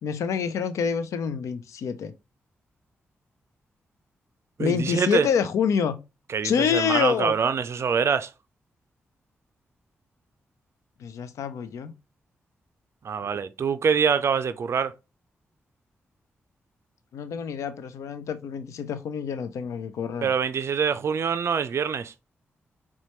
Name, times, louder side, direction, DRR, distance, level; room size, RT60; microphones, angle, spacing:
voice 1, 0.0-2.1 4.6-6.0 6.4-7.3 11.0-11.9 17.1-20.3, left 7 dB, 80° left, 0.4 m, -27 dB
voice 2, 4.6-5.3 6.3-8.3 13.0-14.9 20.2-22.1, right 6 dB, 60° right, 0.3 m, -25 dB
4.3 x 2.2 x 2.8 m
supercardioid pair, 45°, 5 cm